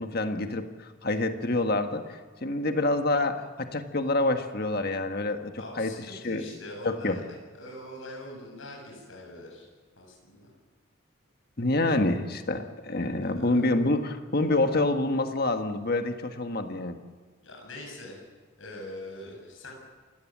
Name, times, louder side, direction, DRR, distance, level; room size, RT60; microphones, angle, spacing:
voice 1, 0.0-5.9 6.2-6.5 6.8-7.2 11.6-17.0, left 2 dB, 50° left, 7 dB, 1.5 m, -27 dB
voice 2, 5.6-7.2 7.5-9.7 10.0-10.5 13.4-13.7 17.4-18.3 18.6-19.7, left 1 dB, 75° left, 0 dB, 7.3 m, -43 dB
28.0 x 16.5 x 7.5 m, 1.5 s
head